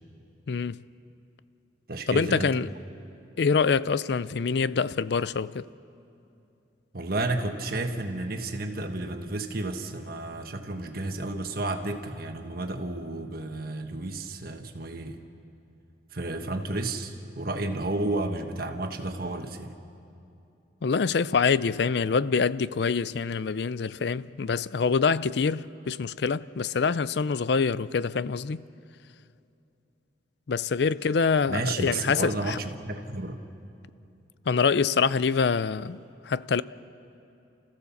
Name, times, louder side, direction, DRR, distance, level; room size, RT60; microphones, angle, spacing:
voice 1, 0.5-0.8 2.1-2.7 3.4-5.6 20.8-28.6 30.5-32.6 34.5-36.6, left 5 dB, 60° left, 0.4 m, -25 dB
voice 2, 1.9-2.5 6.9-15.2 16.1-19.7 31.5-33.4, right 2 dB, 50° right, 1.4 m, -32 dB
29.0 x 15.0 x 7.1 m
head